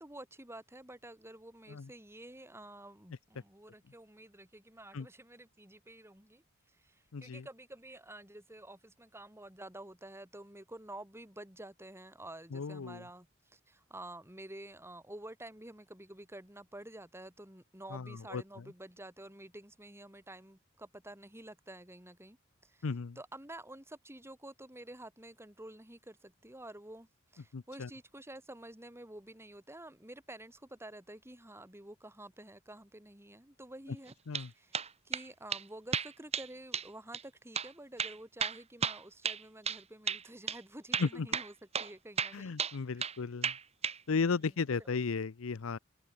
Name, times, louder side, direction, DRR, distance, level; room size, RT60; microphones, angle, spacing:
voice 1, 0.0-6.4 6.8-22.4 22.6-42.6 42.9-43.1 44.1-44.9, right 1 dB, 10° right, 5.3 m, -50 dB
voice 2, 7.1-7.5 12.5-13.0 17.9-18.4 22.8-23.2 27.5-27.9 34.3-34.5 41.0-41.3 42.3-43.5 44.1-45.8, left 4 dB, 80° left, 0.6 m, -35 dB
sound 1, 34.1-34.5 34.7-35.3 35.5-35.6 35.9-36.5 36.7-36.9 37.1-37.2 37.6-37.7 38.0-39.8 40.1-40.2 40.5-40.6 40.9-41.9 42.2-43.2 43.4-44.0, right 6 dB, 30° right, 1.8 m, -34 dB
head